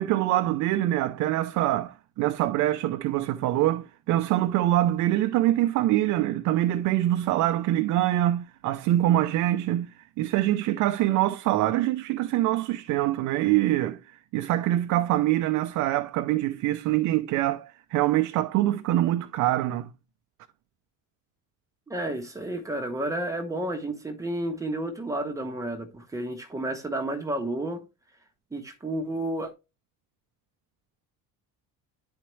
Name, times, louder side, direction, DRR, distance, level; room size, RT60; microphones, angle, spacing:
voice 1, 0.0-9.9 10.2-14.0 14.3-19.9, right 14 dB, 55° right, 0.5 m, -24 dB
voice 2, 21.9-27.8 28.5-29.5, right 1 dB, 10° right, 0.9 m, -31 dB
10.0 x 4.4 x 3.1 m
cardioid pair, 180°, 36 cm